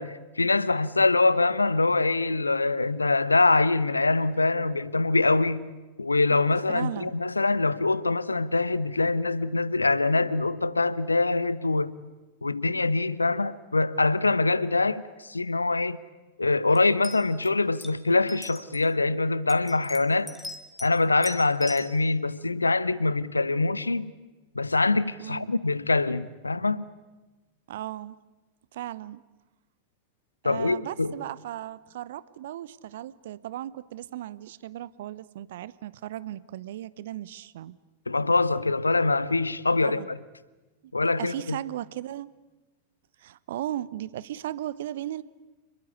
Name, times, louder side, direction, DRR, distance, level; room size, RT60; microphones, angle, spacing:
voice 1, 0.0-5.7 6.0-11.9 12.4-16.0 16.4-20.3 20.8-24.1 24.5-26.9 30.4-31.2 38.1-40.1 40.9-41.6, left 3 dB, 80° left, 0.8 m, -24 dB
voice 2, 6.7-7.1 25.2-25.6 27.7-28.2 28.7-29.2 30.4-37.8 39.8-40.1 41.0-42.3 43.2-45.2, right 13 dB, 55° right, 0.8 m, -36 dB
sound 1, 16.8-16.9 17.0-17.5 17.8-17.9 18.3-18.9 19.5-20.9 21.2-21.9, left 1 dB, 5° left, 2.5 m, -40 dB
28.5 x 21.5 x 8.3 m
figure-of-eight pair, 90°, 0 cm